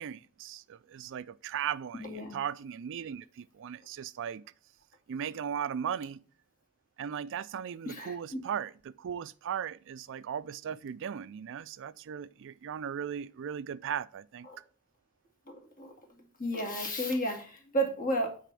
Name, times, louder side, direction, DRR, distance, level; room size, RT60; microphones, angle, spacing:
voice 1, 0.0-4.4 5.1-6.2 7.0-14.5, right 8 dB, 55° right, 0.4 m, -37 dB
voice 2, 2.0-2.4 7.9-8.4 14.5-14.6 15.5-15.9 16.4-18.5, right 1 dB, 40° left, 2.3 m, -33 dB
9.2 x 4.2 x 6.9 m
head